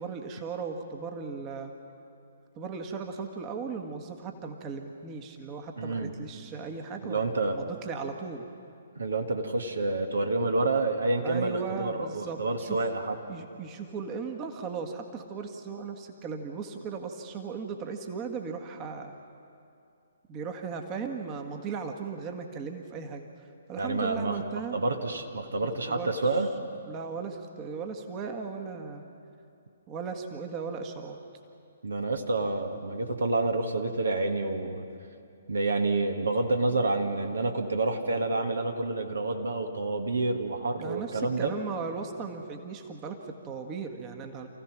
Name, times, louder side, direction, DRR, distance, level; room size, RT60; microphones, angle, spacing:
voice 1, 0.0-1.7 2.5-7.2 7.5-8.4 11.2-12.8 13.3-19.2 20.3-24.8 25.6-26.4 26.9-29.0 29.9-31.2 40.8-44.5, right 5 dB, 25° right, 5 dB, 1.5 m, -37 dB
voice 2, 5.8-6.1 7.0-7.6 9.0-13.2 23.8-24.4 24.7-26.5 31.8-34.8 35.5-41.5, right 2 dB, 70° right, 5 dB, 1.6 m, -28 dB
28.0 x 15.5 x 6.0 m, 2.6 s
figure-of-eight pair, 130°, 0 cm